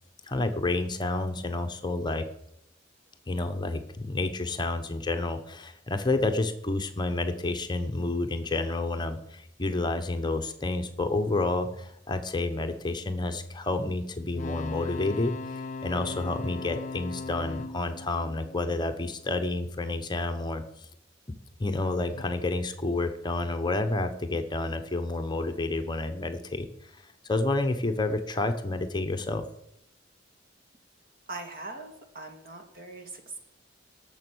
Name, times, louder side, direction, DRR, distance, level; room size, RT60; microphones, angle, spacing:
voice 1, 0.2-2.2 3.3-20.9 21.6-29.4, left 2 dB, 25° left, 7 dB, 0.9 m, -30 dB
sound 1, 14.3-19.3 22.1-22.2, left 3 dB, 40° left, 0.4 m, -38 dB
voice 2, 31.3-33.4, right 2 dB, 50° right, 4 dB, 2.2 m, -41 dB
18.0 x 7.0 x 6.2 m, 0.80 s
head